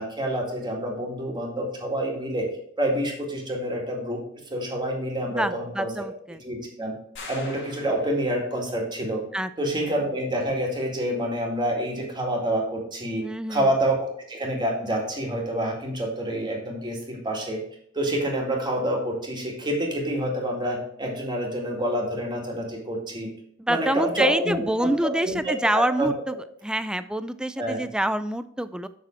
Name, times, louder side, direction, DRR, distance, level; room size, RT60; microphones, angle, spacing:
voice 1, 0.0-2.5 2.8-4.2 4.5-5.9 6.4-6.9 7.3-9.2 9.6-13.2 13.5-17.6 17.9-23.3 23.7-25.4 25.7-26.1 27.6-27.8, right 1 dB, 20° right, 0 dB, 2.0 m, -27 dB
voice 2, 5.3-6.4 9.3-9.5 9.8-9.9 13.2-13.7 23.6-26.4 26.6-28.9, right 1 dB, 5° right, 13 dB, 0.3 m, -26 dB
sound 1, 7.2-8.6, left 3 dB, 60° left, 2.0 m, -42 dB
7.1 x 6.3 x 4.4 m, 0.69 s
head